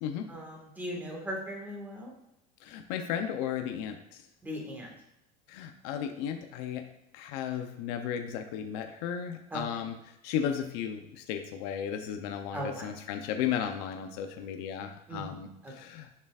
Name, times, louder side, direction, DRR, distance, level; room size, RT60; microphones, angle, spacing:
voice 1, 0.3-2.1 4.4-4.9 9.5-9.6 12.5-12.9 15.1-15.7, equal, 10° right, -1 dB, 1.6 m, -38 dB
voice 2, 2.6-4.2 5.5-6.8 7.1-9.9 10.2-16.1, left 9 dB, 65° left, 5 dB, 0.7 m, -34 dB
6.9 x 6.6 x 2.4 m, 0.86 s
supercardioid pair, 145°, 21 cm